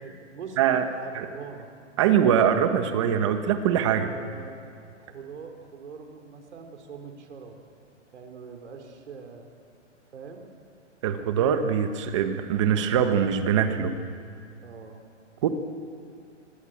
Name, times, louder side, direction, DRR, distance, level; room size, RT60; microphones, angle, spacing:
voice 1, 0.0-0.6 0.9-1.7 3.9-4.6 5.0-7.6 8.1-9.5 10.1-10.5 14.6-15.1, right 5 dB, 65° right, 5 dB, 3.7 m, -42 dB
voice 2, 2.0-4.1 11.0-14.0 15.4-15.5, right 8 dB, 25° right, 8 dB, 1.3 m, -23 dB
24.0 x 24.0 x 8.8 m, 2.3 s
hypercardioid pair, 175°, 37 cm